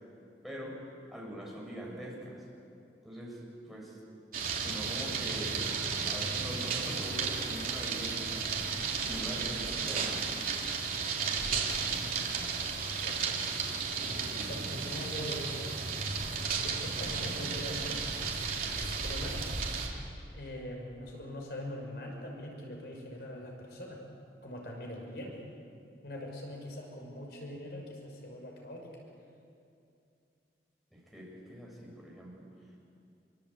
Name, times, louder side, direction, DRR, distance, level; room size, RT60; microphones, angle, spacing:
voice 1, 0.4-0.8 1.1-2.5 3.0-4.0 4.4-5.7 6.0-8.3 9.0-10.2 30.9-32.8, equal, ahead, -3 dB, 6.8 m, -43 dB
sound 1, 4.3-19.9, right 5 dB, 50° right, 3.5 m, -34 dB
voice 2, 12.9-13.4 14.4-15.8 16.5-18.0 18.6-19.4 20.3-24.0 24.4-25.4 26.0-29.0, left 1 dB, 65° left, 0 dB, 5.6 m, -42 dB
27.0 x 24.5 x 8.6 m, 2.5 s
head